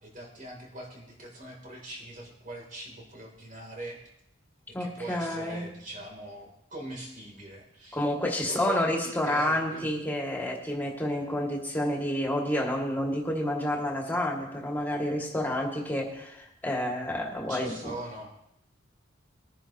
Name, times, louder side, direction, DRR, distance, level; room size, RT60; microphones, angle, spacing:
voice 1, 0.0-4.0 4.8-8.0 8.4-9.8 17.5-18.3, right 1 dB, 45° right, 0 dB, 3.3 m, -41 dB
voice 2, 4.7-5.7 7.9-17.9, left 1 dB, 10° left, -2 dB, 2.3 m, -29 dB
21.5 x 10.0 x 3.0 m, 0.81 s
head